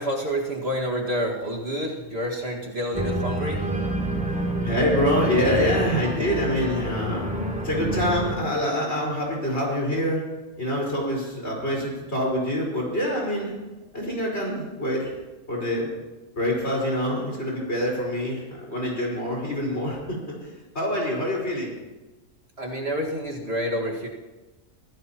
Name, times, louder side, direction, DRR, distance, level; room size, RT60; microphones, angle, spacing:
voice 1, 0.0-3.7 22.6-24.1, equal, 45° right, -2 dB, 2.1 m, -28 dB
Organ, 2.9-8.3, right 1 dB, 5° right, 2.4 m, -28 dB
voice 2, 4.3-7.2 7.6-10.2 10.6-13.5 13.9-15.1 15.5-15.9 16.4-21.7, equal, 45° left, -3 dB, 5.0 m, -26 dB
24.0 x 16.0 x 3.0 m, 1.1 s
omnidirectional pair, 1.5 m